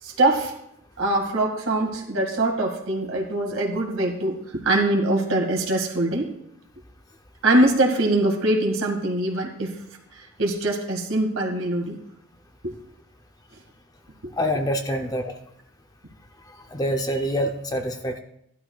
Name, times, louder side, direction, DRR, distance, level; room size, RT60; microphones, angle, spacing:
voice 1, 0.0-0.5 1.0-6.3 7.4-9.8 10.1-12.0 12.6-12.7 14.2-14.3, right 1 dB, 65° right, 0 dB, 2.0 m, -23 dB
voice 2, 14.4-15.3 16.7-18.2, equal, 15° left, 4 dB, 0.6 m, -26 dB
16.5 x 11.5 x 2.4 m, 0.76 s
head